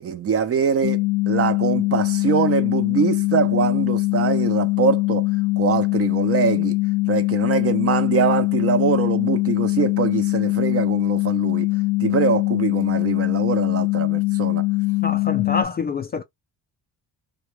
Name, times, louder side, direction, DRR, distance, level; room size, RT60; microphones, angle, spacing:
voice 1, 0.0-5.3 5.6-6.8 7.1-11.7 12.0-14.6, right 7 dB, 35° right, 0.5 m, -23 dB
sound 1, 0.8-15.7, left 22 dB, 80° left, 0.6 m, -22 dB
voice 2, 15.0-16.2, left 4 dB, 25° left, 0.3 m, -26 dB
2.2 x 2.0 x 3.0 m
cardioid pair, 100°, 40 cm